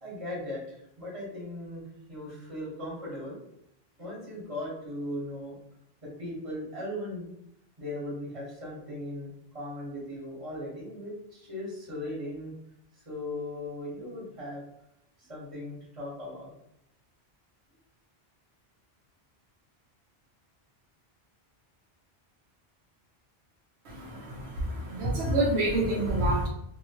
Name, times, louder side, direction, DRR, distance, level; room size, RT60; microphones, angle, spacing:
voice 1, 0.0-1.8 2.1-3.4 4.0-5.6 6.0-7.3 7.8-12.5 12.9-14.6 15.2-16.5, left 1 dB, 30° right, -5 dB, 1.4 m, -38 dB
voice 2, 23.9-26.5, right 1 dB, 90° right, -2 dB, 1.1 m, -27 dB
2.8 x 2.8 x 2.9 m, 0.77 s
omnidirectional pair, 1.1 m